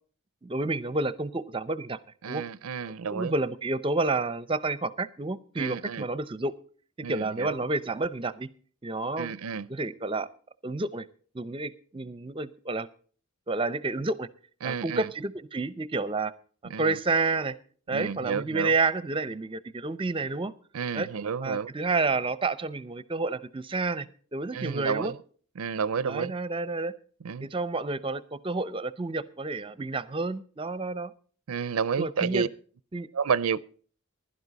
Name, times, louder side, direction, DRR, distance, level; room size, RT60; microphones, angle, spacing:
voice 1, 0.4-2.0 2.3-2.4 3.1-6.5 7.0-8.5 8.8-9.3 9.7-10.3 10.6-11.1 11.3-12.9 13.5-14.3 14.6-16.3 16.8-17.5 17.9-20.5 20.9-21.1 21.4-24.1 24.3-25.1 26.0-26.9 27.4-31.1 32.0-32.5 32.9-33.1, right 3 dB, 25° right, 0.6 m, -30 dB
voice 2, 2.2-3.3 5.6-6.1 7.0-7.6 9.2-9.7 14.6-15.1 16.7-17.0 17.9-18.7 20.7-21.7 24.5-25.2 25.6-26.3 27.2-27.5 31.5-32.5 33.1-33.6, right 6 dB, 85° right, 0.5 m, -30 dB
15.5 x 11.5 x 4.1 m
head